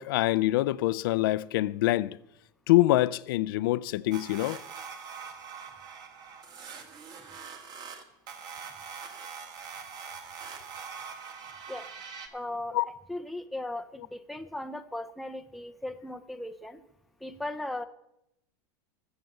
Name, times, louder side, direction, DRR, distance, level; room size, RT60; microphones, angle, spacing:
voice 1, 0.0-2.2 2.7-4.6 12.7-12.9, left 17 dB, 75° left, 0.5 m, -25 dB
sound 1, 4.1-12.3, right 6 dB, 35° right, 1.7 m, -43 dB
voice 2, 12.3-12.8 13.1-16.8 17.2-17.8, left 1 dB, ahead, 0.6 m, -37 dB
15.0 x 6.8 x 7.7 m
supercardioid pair, 140°, 12 cm